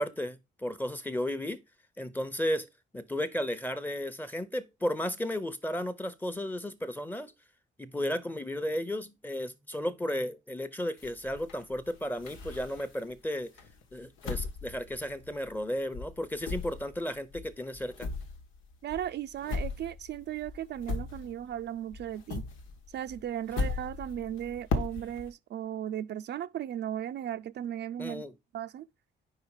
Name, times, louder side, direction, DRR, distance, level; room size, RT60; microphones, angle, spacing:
voice 1, 0.0-1.6 2.0-2.7 2.9-7.3 7.8-13.5 13.9-18.1 28.0-28.3, equal, 10° left, 0.8 m, -34 dB
sound 1, 11.0-13.1 13.6-15.7 15.9-21.6 21.9-25.3, left 4 dB, 90° left, 1.3 m, -37 dB
voice 2, 18.8-22.4 22.9-28.2 28.5-28.9, right 11 dB, 60° right, 0.5 m, -36 dB
4.9 x 4.8 x 4.8 m
cardioid pair, 90°, 20 cm